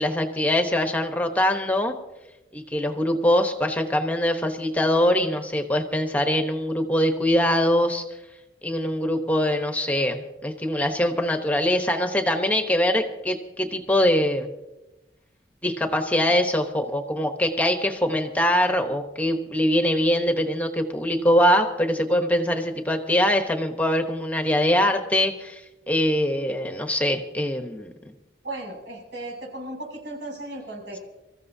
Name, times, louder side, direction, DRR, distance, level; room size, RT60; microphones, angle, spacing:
voice 1, 0.0-2.0 2.5-8.0 8.6-14.5 15.6-28.1, left 1 dB, 10° left, 5 dB, 1.0 m, -23 dB
voice 2, 28.4-31.0, right 2 dB, 90° right, 0 dB, 6.6 m, -36 dB
26.0 x 14.5 x 2.7 m, 1.0 s
head